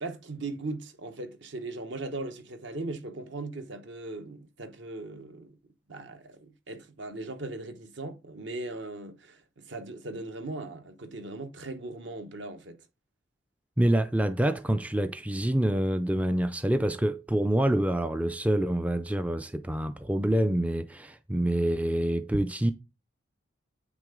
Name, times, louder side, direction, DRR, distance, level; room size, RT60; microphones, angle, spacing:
voice 1, 0.0-5.6 5.9-12.8, right 2 dB, 60° right, 1.1 m, -39 dB
voice 2, 13.8-22.7, right 1 dB, 5° right, 0.3 m, -26 dB
8.3 x 6.1 x 3.8 m
head